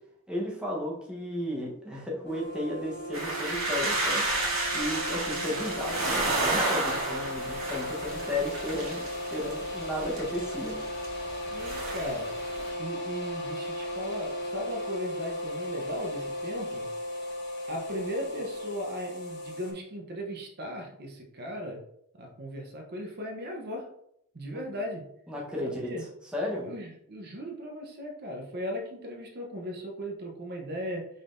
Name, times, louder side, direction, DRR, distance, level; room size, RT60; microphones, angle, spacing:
voice 1, 0.3-4.3 4.7-6.0 6.3-9.0 9.3-10.8 24.5-24.6 25.3-25.9 26.3-26.7, left 1 dB, 5° right, -4 dB, 1.0 m, -34 dB
sound 1, 2.2-19.7, left 1 dB, 60° left, 1.2 m, -36 dB
sound 2, 3.1-12.7, right 2 dB, 85° right, 1.6 m, -32 dB
voice 2, 11.5-12.3 12.8-16.9 17.7-21.8 22.2-23.9 24.3-25.0 25.6-26.0 26.6-31.1, equal, 50° right, 1 dB, 0.8 m, -37 dB
5.2 x 3.9 x 2.6 m, 0.73 s
head